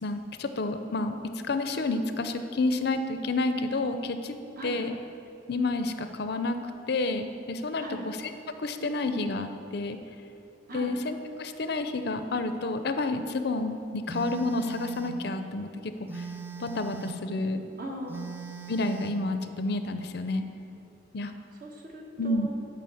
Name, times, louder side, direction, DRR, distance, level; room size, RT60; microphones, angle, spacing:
voice 1, 0.0-1.2 1.5-4.4 4.6-4.9 5.5-6.6 6.9-8.2 8.6-10.0 10.7-15.9 16.6-17.6 18.7-20.4 21.1-21.3 22.2-22.5, left 2 dB, 55° left, 8 dB, 0.6 m, -29 dB
Telephone, 14.1-15.2 16.1-17.2 18.1-19.2, right 5 dB, 10° right, 0.5 m, -40 dB
voice 2, 17.8-18.3 21.6-22.5, right 1 dB, 45° right, 0 dB, 1.4 m, -39 dB
11.0 x 5.1 x 7.0 m, 2.8 s
head